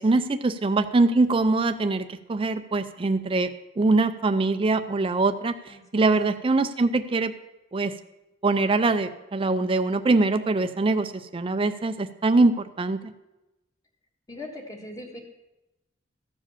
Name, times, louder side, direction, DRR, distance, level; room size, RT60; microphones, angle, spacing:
voice 1, 0.0-3.5 3.8-5.5 5.9-7.3 7.7-7.9 8.4-13.1, right 3 dB, 30° right, 9 dB, 0.5 m, -23 dB
voice 2, 5.7-6.1 14.3-15.2, left 1 dB, 20° left, 1 dB, 1.6 m, -40 dB
13.5 x 4.9 x 7.1 m, 0.97 s
head